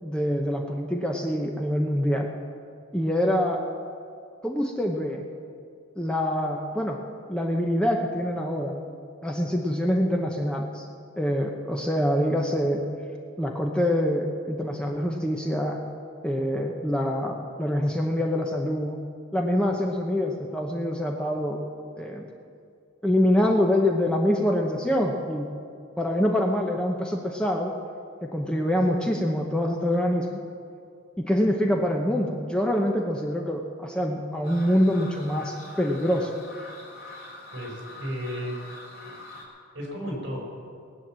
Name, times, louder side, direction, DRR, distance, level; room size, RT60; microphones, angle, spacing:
voice 1, 0.0-2.3 2.9-3.6 4.4-5.2 6.0-7.0 7.3-8.8 9.2-10.9 11.2-12.8 13.4-15.8 16.2-19.0 19.3-21.6 22.0-22.2 23.0-25.5 26.0-27.7 28.2-30.4 31.2-36.3, equal, 5° left, 1 dB, 0.9 m, -25 dB
sound 1, 34.4-39.4, left 2 dB, 45° left, 4.0 m, -44 dB
voice 2, 37.5-38.6 39.0-39.2 39.7-40.4, equal, 55° right, -2 dB, 5.2 m, -34 dB
19.5 x 9.2 x 7.5 m, 2.4 s
head